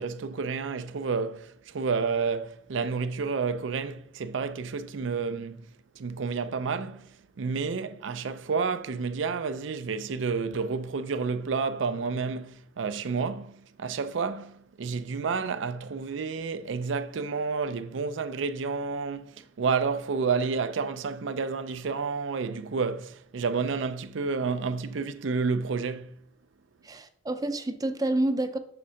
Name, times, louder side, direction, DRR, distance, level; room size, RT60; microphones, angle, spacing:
voice 1, 0.0-5.7 5.9-26.2, right 5 dB, 75° right, 0.5 m, -30 dB
voice 2, 26.8-28.6, right 1 dB, 20° right, 0.5 m, -28 dB
6.9 x 3.6 x 6.3 m
head